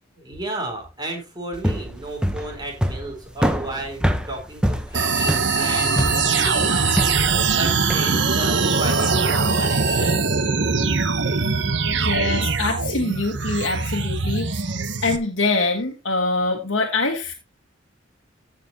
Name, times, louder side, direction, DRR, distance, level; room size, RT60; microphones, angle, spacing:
voice 1, 0.2-10.2, right 2 dB, 20° right, 1 dB, 4.0 m, -33 dB
sound 1, 1.5-8.1, equal, 5° right, 0.9 m, -25 dB
Bowed string instrument, 4.9-10.2, left 1 dB, 25° left, 4.0 m, -32 dB
sound 2, 4.9-15.2, right 4 dB, 65° right, 1.0 m, -22 dB
voice 2, 12.0-14.7 15.0-17.3, left 3 dB, 75° left, 2 dB, 1.5 m, -24 dB
15.5 x 6.0 x 2.8 m, 0.28 s
head